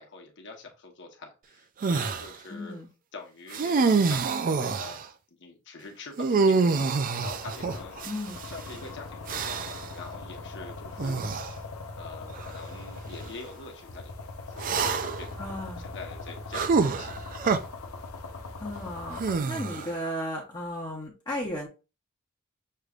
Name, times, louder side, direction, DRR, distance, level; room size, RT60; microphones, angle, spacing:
voice 1, 0.0-2.8 3.1-5.0 5.4-8.0 8.5-11.2 12.0-17.4, left 3 dB, 60° left, 1 dB, 1.1 m, -45 dB
sound 1, 1.8-2.3 3.5-5.0 6.2-8.5 9.3-9.9 11.0-11.5 12.3-12.5 14.6-15.3 16.5-17.6 19.2-20.0, right 4 dB, 40° right, 0.4 m, -26 dB
voice 2, 2.5-2.9 8.0-8.4 15.4-15.9 18.6-21.7, equal, 20° left, -3 dB, 1.0 m, -35 dB
sound 2, 7.2-19.4, left 3 dB, 90° left, 0.8 m, -41 dB
6.6 x 3.1 x 2.4 m, 0.30 s
head